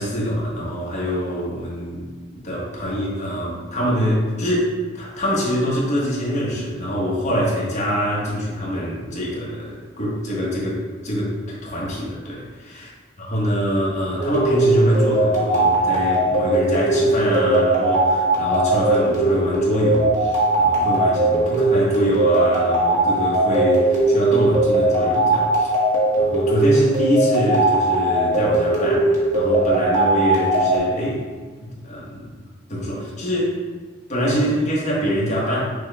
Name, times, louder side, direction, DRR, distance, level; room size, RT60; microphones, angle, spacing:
voice 1, 0.0-2.0 2.3-12.9 13.2-25.7 26.2-31.3 31.6-32.3 32.7-33.6 34.1-35.6, equal, 40° left, -5 dB, 1.2 m, -24 dB
sound 1, 14.2-30.8, right 2 dB, 40° right, 1.0 m, -19 dB
6.1 x 2.3 x 3.2 m, 1.5 s
head